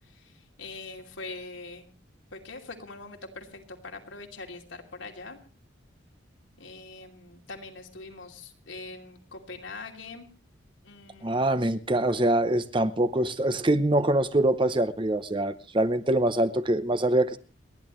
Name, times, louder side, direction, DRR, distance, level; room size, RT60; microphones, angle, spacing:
voice 1, 0.2-1.9 2.3-5.4 6.6-10.3 10.8-11.6, left 3 dB, 80° left, 2.8 m, -43 dB
voice 2, 11.2-17.4, right 1 dB, 25° right, 0.8 m, -24 dB
29.5 x 11.0 x 3.1 m
head